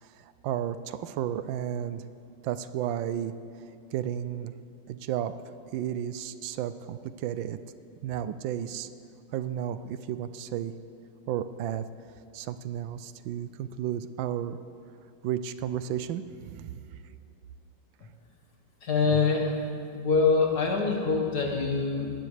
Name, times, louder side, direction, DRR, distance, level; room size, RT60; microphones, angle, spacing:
voice 1, 0.0-2.0 2.4-3.3 3.9-4.5 4.9-5.3 5.7-7.6 8.0-8.9 9.3-10.7 11.3-11.8 12.3-14.6 15.2-16.8, right 10 dB, 90° right, 12 dB, 1.3 m, -33 dB
voice 2, 18.8-19.5 19.9-22.1, left 4 dB, 60° left, 0 dB, 2.0 m, -24 dB
19.5 x 17.0 x 3.3 m, 2.4 s
omnidirectional pair, 2.0 m